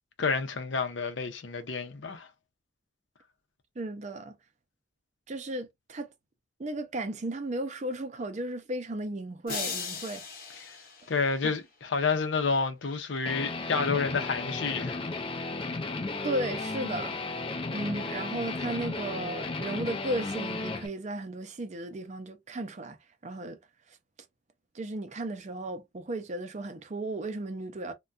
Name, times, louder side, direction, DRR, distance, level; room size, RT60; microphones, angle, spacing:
voice 1, 0.2-2.3 11.1-15.0, left 4 dB, 80° left, 0.6 m, -29 dB
voice 2, 3.8-4.4 5.3-6.1 6.6-10.2 16.2-17.2 17.7-23.0 23.2-23.6 24.7-27.9, right 1 dB, 40° right, 0.5 m, -35 dB
sound 1, 9.5-11.7, left 5 dB, 55° left, 0.9 m, -38 dB
Guitar, 13.3-20.9, left 3 dB, 30° left, 0.4 m, -34 dB
3.3 x 2.2 x 2.4 m
head